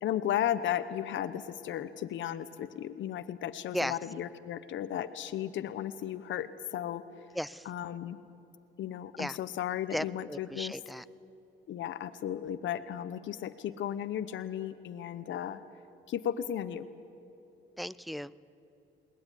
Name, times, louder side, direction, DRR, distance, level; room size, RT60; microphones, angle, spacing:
voice 1, 0.0-7.0 7.7-8.2 8.8-10.7 11.7-15.6 16.1-16.9, left 10 dB, 70° left, 11 dB, 1.0 m, -35 dB
voice 2, 7.3-7.7 9.2-9.4 9.9-11.0 17.8-18.3, equal, ahead, 16 dB, 0.5 m, -36 dB
21.0 x 18.5 x 10.0 m, 3.0 s
cardioid pair, 90°, 20 cm